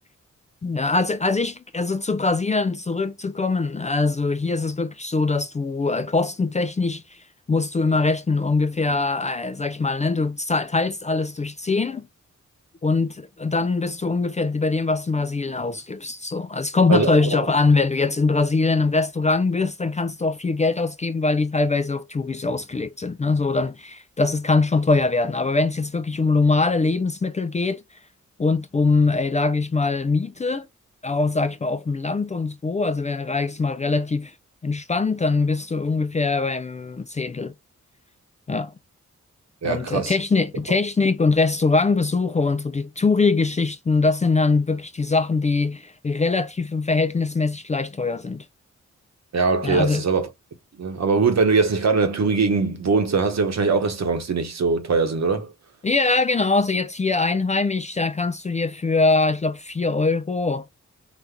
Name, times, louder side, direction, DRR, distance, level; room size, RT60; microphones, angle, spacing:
voice 1, 0.6-12.1 12.8-27.8 28.4-30.7 31.0-34.3 34.6-37.5 38.5-38.7 39.6-48.5 49.6-50.1 55.8-60.6, left 3 dB, 25° left, 0.4 m, -22 dB
voice 2, 39.6-40.1 49.3-50.3 50.8-55.5, right 4 dB, 60° right, 1.1 m, -21 dB
4.1 x 2.5 x 3.4 m
cardioid pair, 60°, 30 cm